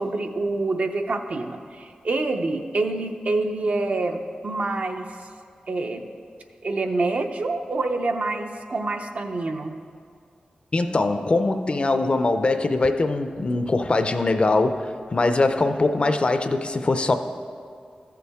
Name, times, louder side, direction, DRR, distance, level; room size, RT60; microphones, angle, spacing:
voice 1, 0.0-5.2 5.7-6.1 6.6-9.8, right 2 dB, 55° right, 5 dB, 0.6 m, -26 dB
voice 2, 10.7-17.2, left 2 dB, 40° left, 8 dB, 0.5 m, -22 dB
14.0 x 6.8 x 3.5 m, 2.2 s
wide cardioid pair, 100°, 3 cm